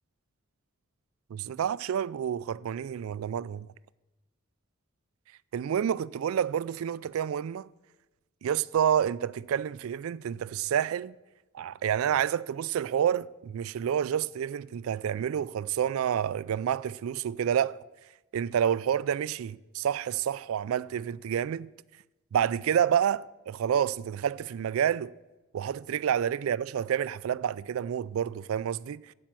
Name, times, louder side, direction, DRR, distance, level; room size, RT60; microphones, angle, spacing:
voice 1, 1.3-3.7 5.5-7.7 8.4-11.1 11.5-17.8 18.3-21.7 22.3-25.1 25.5-29.1, right 9 dB, 90° right, 0.3 m, -29 dB
9.0 x 8.4 x 7.5 m
head